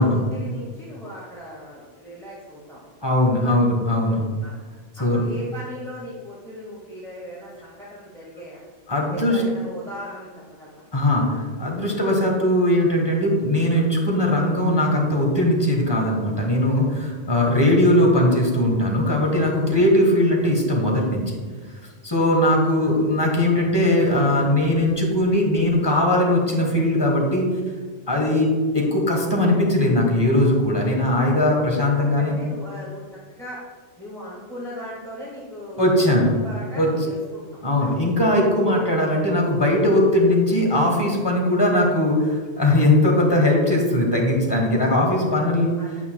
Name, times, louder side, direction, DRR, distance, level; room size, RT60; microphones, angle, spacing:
voice 1, 0.0-3.0 3.3-3.5 4.4-4.5 5.0-8.6 9.1-10.3 10.6-10.8 17.5-17.6 22.1-22.3 22.6-22.9 31.9-33.6 34.0-36.1 36.4-37.4 37.8-37.9 45.8-45.9, equal, 5° left, -9 dB, 1.7 m, -38 dB
voice 2, 3.0-4.2 5.0-5.2 8.9-9.4 10.9-21.4 22.0-27.4 28.1-32.4 35.8-36.3 36.7-36.9 37.6-45.7, left 1 dB, 25° left, -1 dB, 1.5 m, -19 dB
9.4 x 8.2 x 2.3 m, 1.5 s
omnidirectional pair, 1.1 m